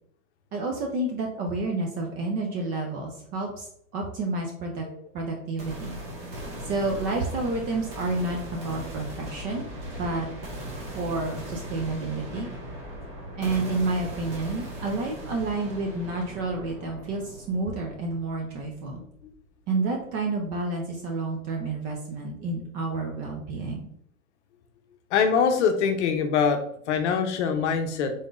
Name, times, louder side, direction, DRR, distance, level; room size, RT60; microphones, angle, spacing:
voice 1, 0.5-4.8 5.1-6.0 6.6-9.7 10.0-10.3 10.9-12.5 13.3-19.0 19.7-23.9, right 3 dB, 20° right, 1 dB, 0.4 m, -30 dB
sound 1, 5.6-19.5, equal, 35° right, 1.5 m, -39 dB
voice 2, 25.1-26.6 26.9-28.1, left 6 dB, 55° left, 6 dB, 0.7 m, -23 dB
3.9 x 3.5 x 2.4 m, 0.67 s
hypercardioid pair, 110°, 42 cm